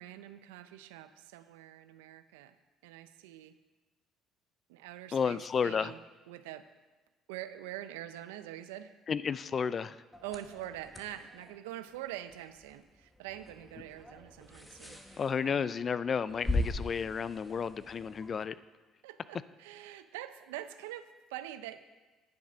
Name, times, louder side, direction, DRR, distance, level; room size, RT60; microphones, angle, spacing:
voice 1, 0.0-2.6 2.8-3.6 4.7-6.0 6.3-6.7 7.3-9.0 10.2-15.7 19.0-21.9, right 13 dB, 90° right, 12 dB, 0.5 m, -45 dB
voice 2, 5.1-5.9 9.1-10.0 15.2-18.6, left 6 dB, 45° left, 16 dB, 0.4 m, -32 dB
sound 1, 10.1-18.4, left 2 dB, 10° left, 1.2 m, -40 dB
9.7 x 7.3 x 5.1 m, 1.3 s
supercardioid pair, 70°, 0 cm